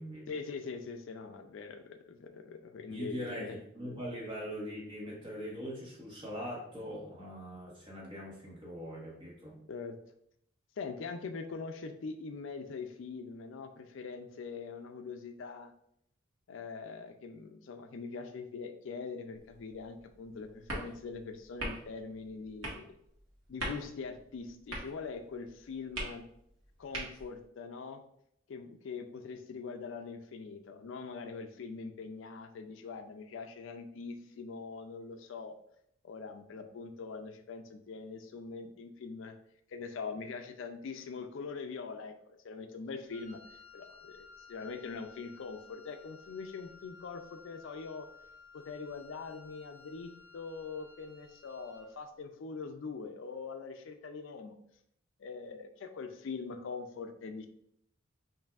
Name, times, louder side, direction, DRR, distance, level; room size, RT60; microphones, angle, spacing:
voice 1, 0.3-3.6 9.7-10.0 10.8-15.7 16.5-22.9 23.5-26.2 26.8-28.0 28.5-35.5 36.0-39.4 39.7-43.4 43.7-48.1 48.5-54.6 55.2-57.5, left 4 dB, 70° left, 7 dB, 0.4 m, -43 dB
voice 2, 2.9-9.6, equal, 25° right, -4 dB, 1.2 m, -41 dB
sound 1, 19.3-27.5, right 1 dB, 75° right, 1.4 m, -44 dB
Wind instrument woodwind instrument, 43.1-52.0, left 5 dB, 10° left, 1.3 m, -56 dB
5.4 x 2.6 x 2.4 m, 0.72 s
head